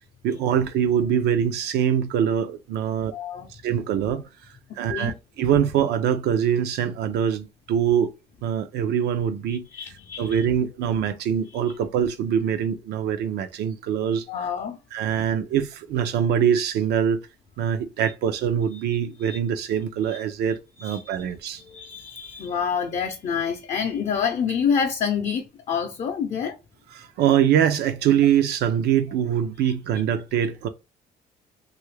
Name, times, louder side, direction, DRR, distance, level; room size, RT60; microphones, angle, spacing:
voice 1, 0.2-3.1 3.5-4.2 4.8-8.1 8.4-14.3 14.9-17.2 17.6-21.6 26.9-30.7, right 9 dB, 75° right, 0.5 m, -23 dB
voice 2, 3.1-3.5 4.9-5.1 9.7-10.5 14.3-14.8 19.2-19.4 20.1-20.2 20.8-21.2 21.7-26.6, left 7 dB, 40° left, 0.5 m, -27 dB
2.7 x 2.4 x 3.2 m
cardioid pair, 110°, 17 cm